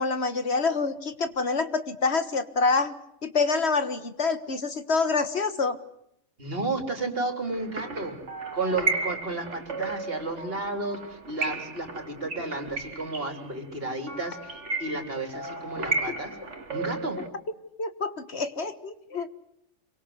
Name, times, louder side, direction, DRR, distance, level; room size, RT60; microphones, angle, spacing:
voice 1, 0.0-2.9 3.2-5.8 17.8-19.3, left 4 dB, 55° left, 11 dB, 1.7 m, -26 dB
voice 2, 6.4-8.2 8.5-16.4 16.7-17.2, right 2 dB, 45° right, 6 dB, 3.9 m, -32 dB
sound 1, 7.5-17.3, right 3 dB, 65° right, 2.5 m, -34 dB
26.5 x 23.5 x 8.0 m, 0.75 s
omnidirectional pair, 1.3 m